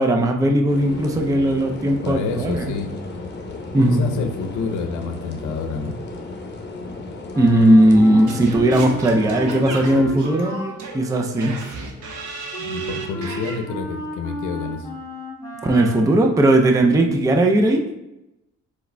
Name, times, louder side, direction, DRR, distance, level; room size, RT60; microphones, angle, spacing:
voice 1, 0.0-2.7 3.7-4.1 7.4-10.6 10.9-11.6 15.6-17.8, right 1 dB, 10° right, 3 dB, 0.4 m, -17 dB
sound 1, 0.7-10.0, left 3 dB, 35° left, 0.8 m, -35 dB
voice 2, 2.0-2.9 3.8-6.0 12.6-14.9, left 4 dB, 80° left, 6 dB, 0.6 m, -28 dB
Wind instrument woodwind instrument, 7.3-16.3, equal, 10° left, 1.2 m, -34 dB
Singing / Scratching (performance technique), 8.3-13.6, right 3 dB, 75° right, 0.9 m, -34 dB
4.7 x 4.2 x 2.2 m, 0.92 s
cardioid pair, 90°, 30 cm